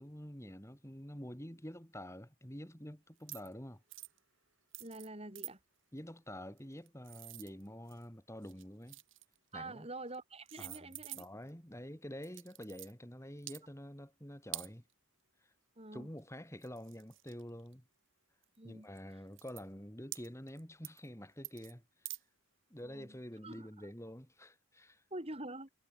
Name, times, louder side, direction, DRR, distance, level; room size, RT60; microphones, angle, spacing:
voice 1, 0.0-3.8 5.9-9.0 9.5-9.9 10.6-14.8 15.4-15.5 15.9-17.8 18.6-22.1 22.7-25.0, equal, 15° left, 5.6 m, -48 dB
sound 1, 3.2-3.5 3.9-4.2 4.7-5.1 5.3-5.5 6.6-8.0 8.4-9.4 10.1-10.2 10.5-11.5 12.2-12.9 13.4-13.6 14.5-14.7 16.2-16.3 16.6-17.7 18.4-18.6 19.0-19.1 19.3-19.6 20.1-20.6 20.8-21.1 21.4-21.7 22.0-22.2, right 17 dB, 60° right, 3.1 m, -47 dB
voice 2, 4.8-5.6 9.5-11.2 15.8-16.1 18.6-19.2 22.8-23.1 23.4-23.9 25.1-25.7, right 2 dB, 25° right, 4.3 m, -46 dB
head